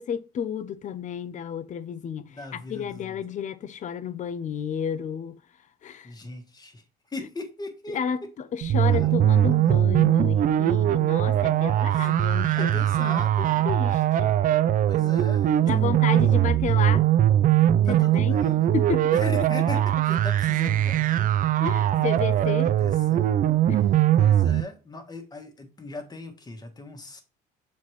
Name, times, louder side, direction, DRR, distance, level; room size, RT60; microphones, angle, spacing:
voice 1, 0.0-5.4 5.8-6.1 7.9-14.4 15.6-17.1 17.9-18.3 18.7-19.3 21.6-22.7 23.7-23.8, left 7 dB, 45° left, 0.6 m, -32 dB
voice 2, 2.3-3.2 6.0-8.0 8.9-9.1 11.2-12.2 12.5-13.7 14.9-16.0 16.3-16.4 17.8-18.7 19.1-21.5 21.9-23.5 24.2-27.2, left 2 dB, 25° left, 1.5 m, -40 dB
sound 1, 8.6-24.6, right 11 dB, 55° right, 0.5 m, -21 dB
7.3 x 4.2 x 3.2 m
cardioid pair, 110°, 17 cm